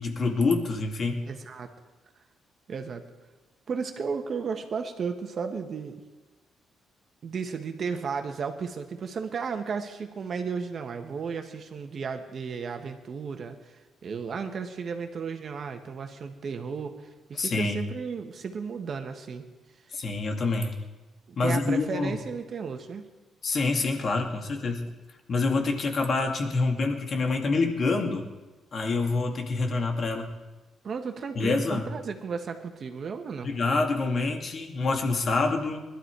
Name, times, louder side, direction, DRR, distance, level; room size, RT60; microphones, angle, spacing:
voice 1, 0.0-1.2 17.4-17.8 19.9-20.7 21.4-22.2 23.4-24.9 25.3-28.3 28.7-30.3 31.4-31.9 33.4-35.8, left 3 dB, 50° left, 2 dB, 2.3 m, -26 dB
voice 2, 1.3-1.7 2.7-3.0 3.7-6.0 7.2-19.5 21.3-23.1 30.8-33.5, right 5 dB, 50° right, 6 dB, 1.7 m, -34 dB
20.5 x 12.5 x 4.8 m, 1.2 s
cardioid pair, 90°, 0 cm